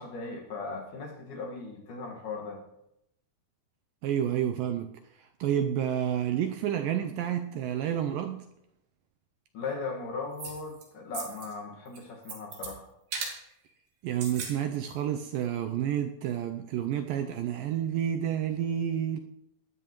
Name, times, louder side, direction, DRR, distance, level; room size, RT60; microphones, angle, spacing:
voice 1, 0.0-2.6 9.5-12.9, left 4 dB, 55° left, 1 dB, 3.0 m, -38 dB
voice 2, 4.0-8.5 14.0-19.2, right 10 dB, 80° right, 6 dB, 2.0 m, -30 dB
sound 1, 10.4-10.8 11.1-11.5 11.9-12.7 13.1-13.4 14.1-14.6 14.9-15.0, right 5 dB, 65° right, 3.6 m, -37 dB
19.5 x 12.5 x 3.1 m, 0.82 s
omnidirectional pair, 4.6 m